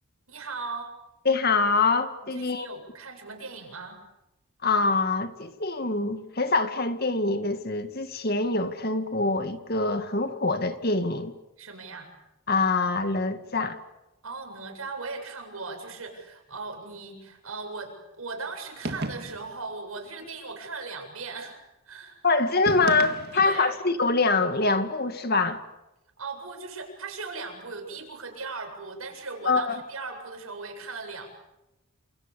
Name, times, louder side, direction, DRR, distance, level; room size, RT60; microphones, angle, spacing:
voice 1, 0.3-0.9 2.3-4.0 11.6-12.1 14.2-21.6 21.8-22.2 22.5-22.6 23.3-23.7 26.2-31.3, right 4 dB, 80° right, 4 dB, 7.8 m, -38 dB
voice 2, 1.3-2.7 4.6-11.3 12.5-13.8 22.2-25.6 29.5-29.8, left 3 dB, 45° left, 8 dB, 2.2 m, -25 dB
sound 1, 18.8-19.6 22.6-23.7, right 2 dB, 50° right, 2.1 m, -34 dB
30.0 x 28.0 x 7.1 m, 0.94 s
head